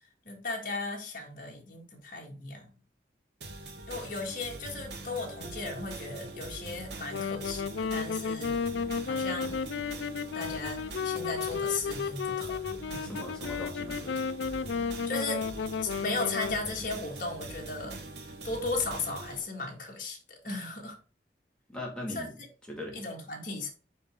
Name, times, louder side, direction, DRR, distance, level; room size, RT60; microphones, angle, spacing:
voice 1, 0.3-2.7 3.9-9.6 10.3-12.6 12.9-13.3 15.1-15.4 15.8-18.0 18.4-21.0 22.2-22.3 22.9-23.7, left 3 dB, 50° left, 0 dB, 1.9 m, -36 dB
sound 1, 3.4-19.4, right 2 dB, 70° right, 1.1 m, -43 dB
Wind instrument woodwind instrument, 7.1-16.6, left 6 dB, 85° left, 0.4 m, -33 dB
voice 2, 13.0-14.3 21.7-22.4 22.7-23.0, left 1 dB, 5° left, -2 dB, 2.0 m, -39 dB
5.6 x 5.0 x 3.7 m, 0.37 s
head